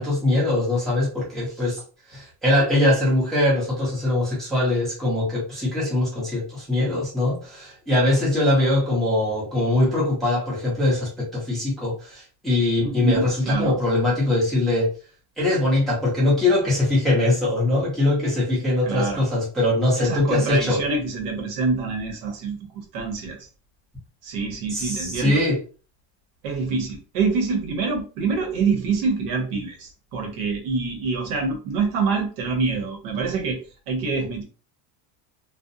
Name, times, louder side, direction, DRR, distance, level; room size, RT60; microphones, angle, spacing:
voice 1, 0.0-1.8 2.1-14.9 15.4-20.8 24.7-25.6, left 1 dB, ahead, 0.5 m, -22 dB
voice 2, 12.8-13.8 18.8-19.2 20.0-22.6 22.9-23.5 24.2-25.4 26.4-33.6 33.9-34.4, right 4 dB, 80° right, 1.0 m, -26 dB
2.5 x 2.0 x 2.5 m
cardioid pair, 175°, 44 cm